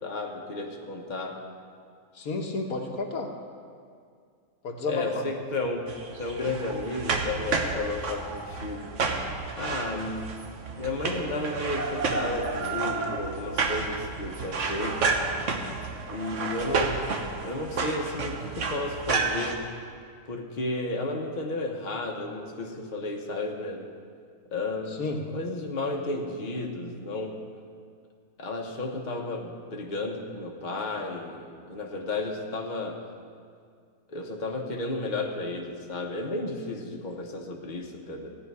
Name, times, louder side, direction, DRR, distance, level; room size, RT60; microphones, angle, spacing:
voice 1, 0.0-1.4 4.9-5.9 6.2-8.9 9.5-10.3 10.8-15.2 16.1-17.1 17.4-19.6 20.3-23.9 24.5-25.0 25.3-27.4 28.4-33.0 34.1-38.4, left 2 dB, 35° left, 1 dB, 1.1 m, -33 dB
voice 2, 2.1-3.3 4.6-5.3 24.9-25.2, left 3 dB, 75° left, 2 dB, 1.5 m, -31 dB
sound 1, 5.9-19.5, right 4 dB, 60° right, 1.3 m, -31 dB
15.5 x 5.1 x 9.6 m, 2.2 s
omnidirectional pair, 1.5 m